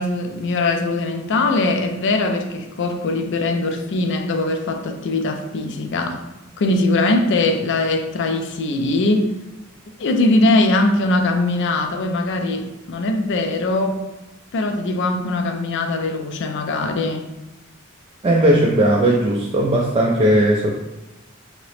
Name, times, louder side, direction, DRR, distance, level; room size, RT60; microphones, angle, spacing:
voice 1, 0.0-6.2 6.6-9.3 10.0-14.0 14.5-17.3, left 2 dB, 60° left, 5 dB, 0.4 m, -21 dB
voice 2, 18.2-20.7, right 1 dB, 25° right, -3 dB, 0.3 m, -17 dB
2.9 x 2.8 x 3.1 m, 1.0 s
head